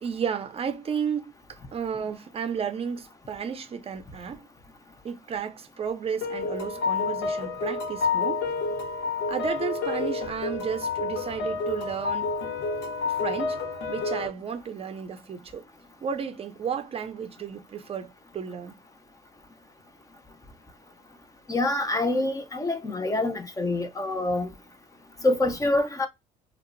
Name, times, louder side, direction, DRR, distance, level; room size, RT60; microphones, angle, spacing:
voice 1, 0.0-4.5 5.0-8.4 9.3-12.3 13.1-13.6 13.9-15.6 16.0-18.7, right 7 dB, 35° right, 0.5 m, -33 dB
sound 1, 6.2-14.3, left 4 dB, 90° left, 0.8 m, -29 dB
voice 2, 21.5-24.5 25.2-26.1, left 2 dB, 20° left, 0.5 m, -26 dB
2.7 x 2.0 x 2.5 m
cardioid pair, 110°, 17 cm